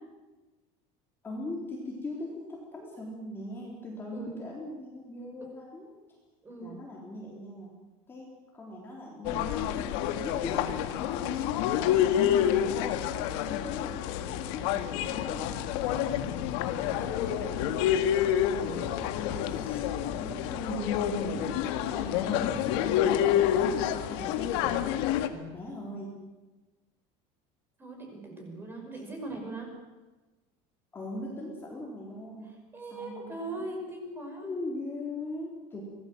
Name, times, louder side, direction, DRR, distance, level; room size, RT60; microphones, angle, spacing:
voice 1, 1.2-5.9 6.6-7.7 8.1-9.9 10.2-12.0 12.2-15.6 15.9-16.0 17.1-17.9 18.6-19.0 19.2-19.8 20.2-21.5 21.8-24.8 25.3-26.2 28.9-29.0 30.9-32.5 32.9-33.7 34.4-35.8, left 1 dB, 15° left, -3 dB, 3.9 m, -40 dB
voice 2, 6.4-6.7 15.9-16.2 27.8-29.7 32.7-34.5, right 2 dB, 15° right, 2 dB, 5.7 m, -40 dB
sound 1, 9.2-25.3, left 10 dB, 70° left, 1.8 m, -28 dB
25.5 x 19.0 x 7.8 m, 1.2 s
cardioid pair, 180°, 16 cm